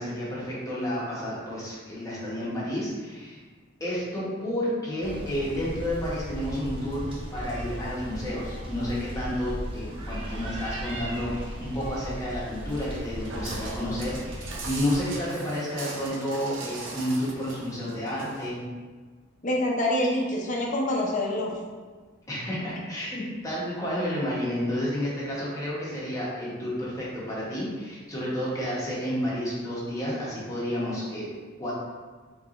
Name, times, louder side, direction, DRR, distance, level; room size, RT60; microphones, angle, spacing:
voice 1, 0.0-3.4 3.8-18.6 22.3-31.3 31.6-31.7, equal, 15° left, -7 dB, 1.2 m, -31 dB
sound 1, 5.0-15.0, equal, 25° right, 0.6 m, -37 dB
Walk footsteps, 12.7-18.5, right 2 dB, 70° right, 0.7 m, -40 dB
voice 2, 19.4-21.5, left 1 dB, 40° left, -2 dB, 0.7 m, -26 dB
4.6 x 3.9 x 2.5 m, 1.4 s
head